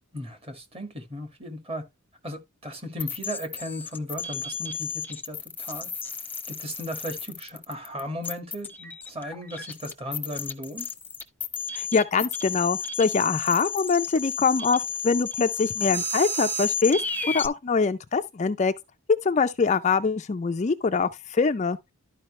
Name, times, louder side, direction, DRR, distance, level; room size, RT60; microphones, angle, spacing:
voice 1, 0.1-1.8 2.2-5.9 6.5-10.9, equal, 25° right, 1.8 m, -36 dB
sound 1, 3.0-17.5, left 4 dB, 10° left, 0.8 m, -32 dB
voice 2, 11.7-18.7 19.1-21.8, left 4 dB, 35° left, 0.4 m, -24 dB
12.0 x 4.9 x 3.1 m
head